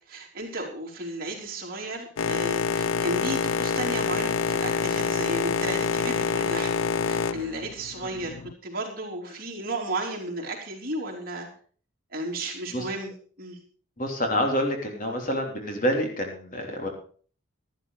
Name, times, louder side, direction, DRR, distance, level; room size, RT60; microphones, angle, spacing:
voice 1, 0.1-8.3 8.6-11.5 12.1-13.1 13.4-13.6, right 2 dB, 45° right, -1 dB, 3.8 m, -34 dB
Boat Water vehicle, 2.2-8.5, left 6 dB, 90° left, 0.5 m, -27 dB
voice 2, 14.0-16.9, equal, 40° left, 2 dB, 3.4 m, -27 dB
13.0 x 12.5 x 4.9 m, 0.43 s
head